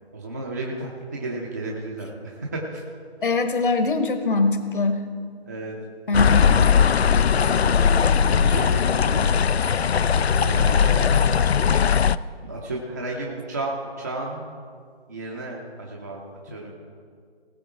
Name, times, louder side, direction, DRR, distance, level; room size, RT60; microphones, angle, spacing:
voice 1, 0.1-2.8 5.4-5.8 8.2-9.3 10.4-11.3 12.4-14.4 15.1-16.2 16.5-16.7, right 2 dB, 15° right, -2 dB, 0.6 m, -32 dB
voice 2, 3.2-5.0 6.1-6.6, left 3 dB, 55° left, 8 dB, 1.2 m, -22 dB
sound 1, 6.1-12.2, left 7 dB, 75° left, 0.5 m, -19 dB
19.0 x 6.9 x 4.7 m, 2.1 s
figure-of-eight pair, 150°, 32 cm